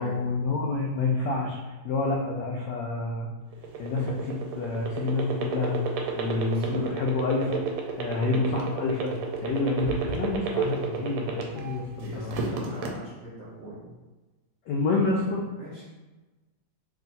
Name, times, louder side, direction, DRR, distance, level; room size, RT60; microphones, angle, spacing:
voice 1, 0.0-1.6 1.8-3.3 3.8-5.8 6.2-7.6 8.0-9.1 9.4-12.6 14.7-15.4, left 3 dB, 80° left, -2 dB, 0.9 m, -28 dB
sound 1, 3.5-11.8 12.1-12.9, right 7 dB, 85° right, 1.5 m, -30 dB
voice 2, 6.2-6.9 8.2-8.5 12.0-13.9 15.0-15.3 15.6-15.8, right 1 dB, 50° right, -8 dB, 1.2 m, -41 dB
3.5 x 2.5 x 4.0 m, 1.2 s
omnidirectional pair, 2.4 m